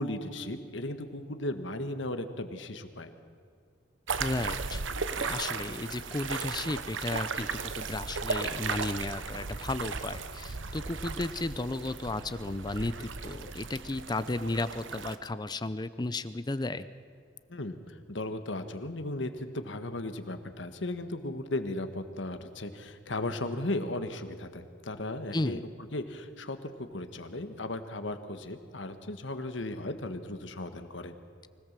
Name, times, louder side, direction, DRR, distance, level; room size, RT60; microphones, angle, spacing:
voice 1, 0.0-3.1 17.5-25.6 25.9-31.1, left 1 dB, 75° left, 8 dB, 1.6 m, -36 dB
sound 1, 4.1-15.2, right 5 dB, 85° right, 1.0 m, -36 dB
voice 2, 4.2-4.8 5.2-16.9 25.3-25.6, left 2 dB, 20° left, 13 dB, 0.6 m, -34 dB
24.5 x 17.5 x 7.5 m, 2.2 s
head